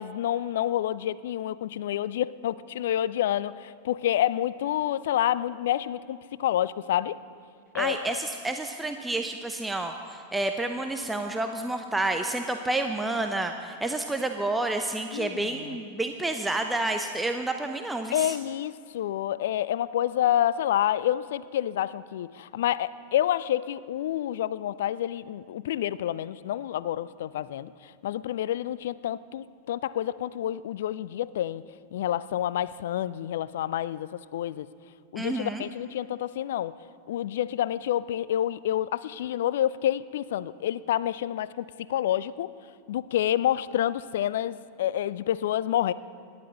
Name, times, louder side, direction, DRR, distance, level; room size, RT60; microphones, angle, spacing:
voice 1, 0.0-7.2 7.7-8.2 15.1-15.5 18.1-31.6 31.9-34.7 35.1-36.7 37.1-42.5 42.9-45.9, left 11 dB, 55° left, 18 dB, 0.4 m, -28 dB
voice 2, 7.7-18.4 35.2-35.6, right 2 dB, 5° right, 5 dB, 0.7 m, -29 dB
26.0 x 11.5 x 4.0 m, 2.1 s
figure-of-eight pair, 90°, 0 cm